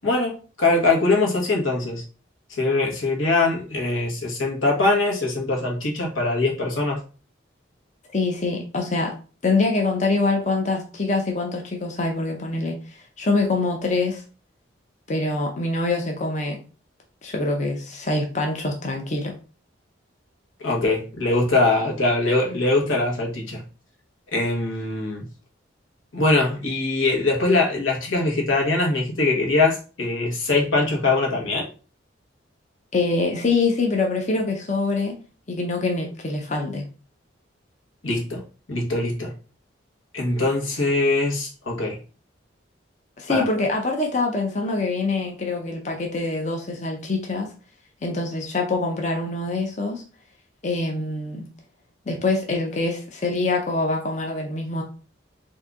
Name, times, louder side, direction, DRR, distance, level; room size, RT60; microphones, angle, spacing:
voice 1, 0.0-2.0 2.6-7.0 20.6-23.6 24.3-25.2 26.1-31.7 38.0-38.4 38.7-39.3 40.1-42.0 43.3-43.4, left 2 dB, 90° left, -1 dB, 1.3 m, -22 dB
voice 2, 8.1-9.1 9.4-14.2 15.1-16.6 17.2-19.3 32.9-35.2 35.5-36.9 43.2-47.5 48.0-50.0 50.6-51.5 52.1-54.8, left 3 dB, 35° left, 2 dB, 0.6 m, -24 dB
3.8 x 2.7 x 3.5 m, 0.37 s
head